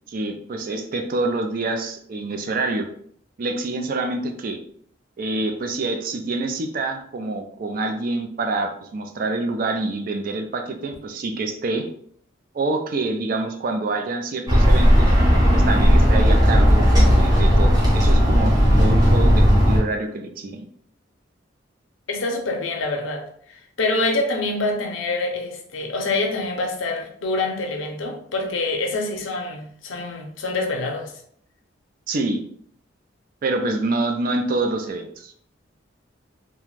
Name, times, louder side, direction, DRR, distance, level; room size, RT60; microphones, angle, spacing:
voice 1, 0.1-2.9 3.4-4.6 5.2-11.9 12.5-15.1 15.5-20.7 32.1-32.4 33.4-35.3, right 2 dB, 45° right, 0.4 m, -26 dB
sound 1, 14.5-19.8, equal, 20° right, 0.7 m, -15 dB
voice 2, 22.1-31.1, left 2 dB, 90° left, 0.6 m, -26 dB
2.4 x 2.2 x 3.1 m
head